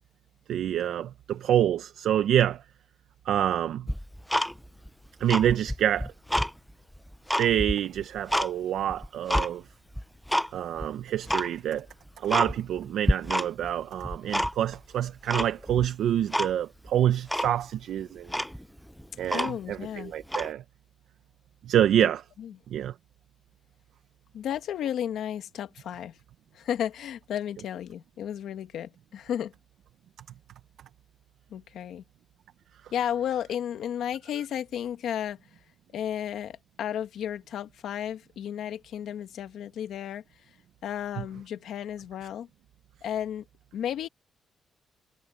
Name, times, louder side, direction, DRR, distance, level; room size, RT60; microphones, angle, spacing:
voice 1, 0.5-2.6 3.3-3.9 5.2-6.1 7.4-9.6 10.5-11.9 12.2-18.3 19.2-20.6 21.7-22.2 22.7-22.9, right 11 dB, 90° right, 0.7 m, -26 dB
Tick-tock, 3.9-4.9 5.2-6.5 7.0-8.5 8.9-9.5 10.0-10.5 10.8-10.9 11.3-11.5 11.9-12.0 12.3-12.8 13.1-13.7 14.0-14.8 15.3-15.9 16.3-16.5 16.9-17.0 17.3-17.5 18.0-18.1 18.3-19.8 20.2-20.5, equal, ahead, 0.4 m, -28 dB
voice 2, 19.3-20.1 22.0-22.1 22.4-22.6 24.3-26.2 26.5-29.5 31.5-32.0 32.9-35.4 35.9-40.2 40.8-42.5 43.0-43.5 43.7-44.1, left 10 dB, 85° left, 1.7 m, -33 dB
wide cardioid pair, 175°, 0 cm